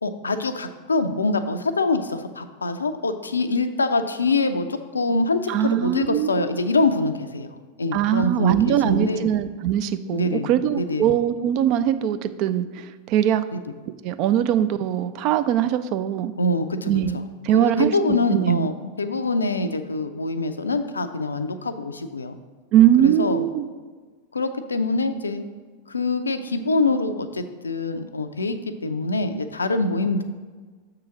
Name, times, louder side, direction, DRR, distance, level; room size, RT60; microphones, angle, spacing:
voice 1, 0.0-7.5 7.8-9.3 10.1-11.2 16.4-17.2 17.5-22.4 23.0-23.5 24.3-25.4 25.9-28.6 28.8-30.2, left 2 dB, 75° left, 9 dB, 0.4 m, -24 dB
voice 2, 5.5-6.5 7.9-13.4 14.0-16.3 16.8-17.2 17.4-18.7 22.7-23.7, right 10 dB, 40° right, 11 dB, 0.3 m, -21 dB
6.8 x 3.8 x 5.9 m, 1.4 s
figure-of-eight pair, 90°, 0 cm